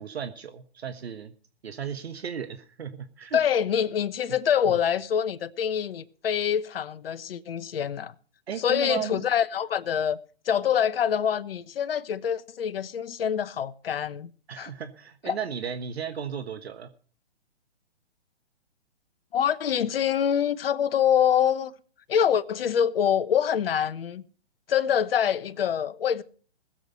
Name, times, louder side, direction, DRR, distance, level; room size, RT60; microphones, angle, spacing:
voice 1, 0.0-1.3 1.6-3.4 4.6-4.8 8.5-9.3 14.5-16.9, right 7 dB, 70° right, 1.3 m, -35 dB
voice 2, 3.3-8.1 8.6-10.2 10.5-14.3 14.6-14.7 15.3-15.4 19.3-21.7 22.1-24.2 24.7-26.2, left 8 dB, 60° left, 1.0 m, -25 dB
19.5 x 7.8 x 5.4 m
hypercardioid pair, 135°, 33 cm